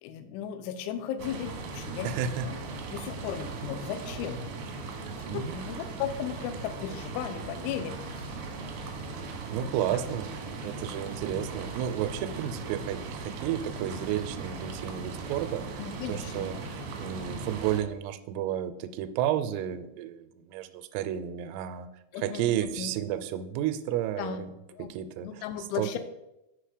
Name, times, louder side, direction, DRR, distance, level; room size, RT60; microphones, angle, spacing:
voice 1, 0.0-2.6 2.9-4.5 5.2-8.4 8.8-9.2 9.9-10.0 15.8-16.7 22.1-22.9 24.2-24.9 25.2-26.0, left 9 dB, 80° left, 9 dB, 3.0 m, -36 dB
sound 1, 1.2-17.8, right 3 dB, 70° right, 2.0 m, -38 dB
voice 2, 2.0-2.5 5.1-5.7 9.5-15.8 16.1-21.9 22.2-25.3 25.8-26.0, right 10 dB, 85° right, 10 dB, 3.3 m, -32 dB
8.4 x 6.2 x 4.9 m, 0.90 s
omnidirectional pair, 5.8 m